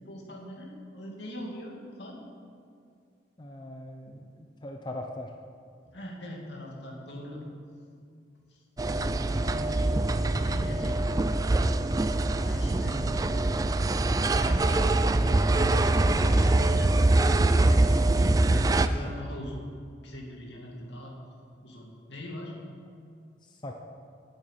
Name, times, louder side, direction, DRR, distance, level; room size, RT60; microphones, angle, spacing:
voice 1, 0.1-2.2 5.9-7.4 8.5-8.6 8.9-10.2 10.4-11.1 12.4-13.4 14.4-15.0 15.5-19.6 20.0-21.2 21.6-22.5, left 1 dB, 75° left, -1 dB, 2.4 m, -41 dB
voice 2, 3.4-5.3 23.4-23.7, left 1 dB, 25° left, 3 dB, 0.6 m, -40 dB
sound 1, 8.8-18.9, right 2 dB, 20° right, 0.3 m, -24 dB
9.6 x 7.8 x 9.0 m, 2.3 s
head